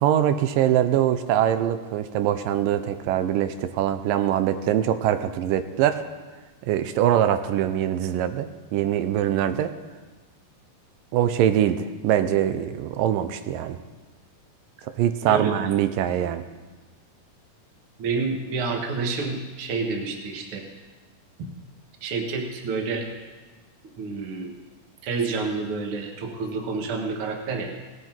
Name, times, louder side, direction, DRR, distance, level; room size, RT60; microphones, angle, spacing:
voice 1, 0.0-6.0 6.6-9.7 11.1-13.8 15.0-16.4, right 11 dB, 85° right, 10 dB, 2.3 m, -23 dB
voice 2, 15.3-15.6 18.0-20.6 21.4-21.5 22.0-23.1 24.0-24.5 25.0-27.7, right 4 dB, 50° right, 2 dB, 1.9 m, -28 dB
18.0 x 9.6 x 4.5 m, 1.3 s
omnidirectional pair, 3.9 m